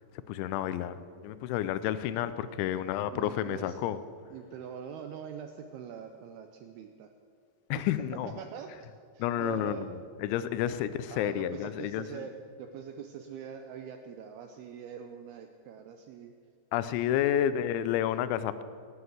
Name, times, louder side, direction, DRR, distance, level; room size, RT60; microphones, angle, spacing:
voice 1, 0.1-4.0 7.7-8.4 9.2-12.3 16.7-18.6, left 11 dB, 85° left, 13 dB, 3.0 m, -30 dB
voice 2, 3.1-3.8 4.3-7.1 7.7-7.8 8.1-8.7 9.1-9.8 10.6-10.7 11.1-12.3 12.6-16.3 17.1-17.3, right 8 dB, 80° right, 6 dB, 2.3 m, -43 dB
17.5 x 9.8 x 8.0 m, 2.3 s
omnidirectional pair, 5.3 m